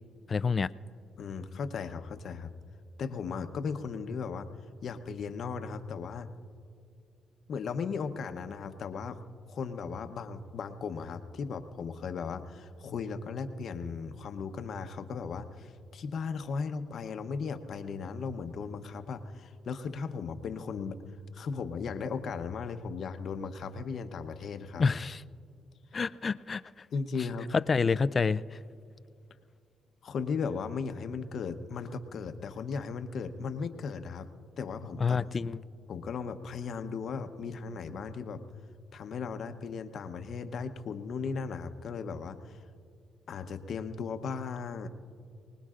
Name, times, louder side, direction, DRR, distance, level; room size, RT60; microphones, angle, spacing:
voice 1, 0.3-0.7 24.8-25.2 25.9-26.6 27.7-28.6 35.0-35.6, left 5 dB, 35° left, 16 dB, 0.4 m, -28 dB
voice 2, 1.2-2.5 3.0-4.5 4.8-6.3 7.5-9.2 9.5-21.0 21.3-24.9 26.9-27.5 30.0-34.3 34.6-35.2 35.9-38.4 38.9-42.6 43.3-44.9, left 5 dB, 60° left, 8 dB, 0.9 m, -36 dB
24.5 x 19.5 x 2.5 m, 2.3 s
cardioid pair, 90°, 0 cm